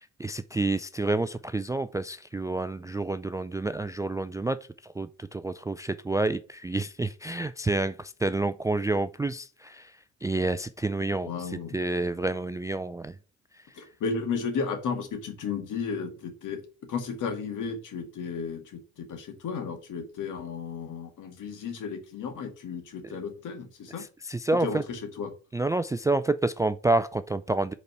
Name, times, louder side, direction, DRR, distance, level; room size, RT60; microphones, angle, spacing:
voice 1, 0.2-4.6 4.8-9.9 10.2-13.1 24.0-24.8 25.5-27.7, right 2 dB, 10° right, 0.4 m, -29 dB
voice 2, 11.2-11.8 13.7-16.6 16.9-24.1 24.6-25.3, left 5 dB, 60° left, 2.0 m, -34 dB
5.2 x 4.2 x 6.0 m
hypercardioid pair, 55°, 35 cm